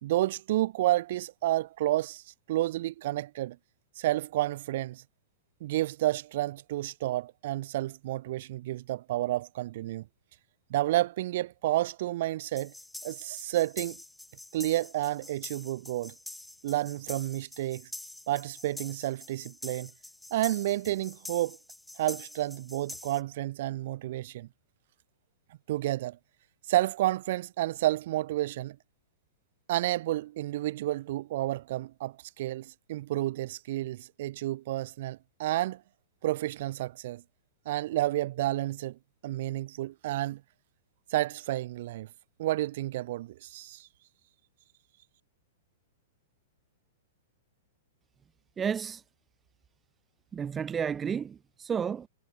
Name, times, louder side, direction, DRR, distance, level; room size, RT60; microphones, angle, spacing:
voice 1, 0.0-3.6 4.0-5.0 5.6-10.1 10.7-12.7 13.0-14.0 14.5-16.1 16.6-17.9 18.3-19.9 20.3-21.6 22.0-24.5 25.7-26.2 26.7-28.8 29.7-35.8 36.2-37.2 37.6-40.4 41.1-42.1 42.4-43.9, right 15 dB, 55° right, 1.2 m, -30 dB
sound 1, 12.4-23.2, left 1 dB, 5° left, 3.4 m, -46 dB
voice 2, 48.6-49.0 50.3-52.1, right 7 dB, 20° right, 0.4 m, -32 dB
figure-of-eight pair, 105°, 0 cm